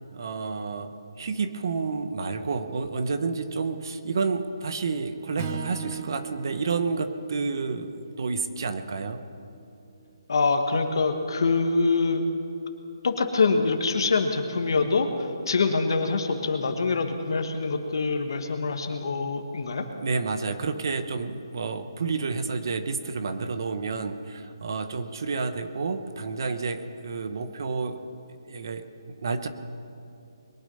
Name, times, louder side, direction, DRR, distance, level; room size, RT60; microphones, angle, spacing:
voice 1, 0.1-9.2 20.0-28.0 28.5-28.9 29.2-29.5, right 4 dB, 50° right, 10 dB, 1.0 m, -30 dB
Strum, 5.4-9.7, right 6 dB, 30° right, 0.9 m, -39 dB
voice 2, 10.3-12.3 13.0-19.8, left 4 dB, 60° left, 6 dB, 1.5 m, -25 dB
21.5 x 8.8 x 5.5 m, 2.6 s
hypercardioid pair, 165°, 3 cm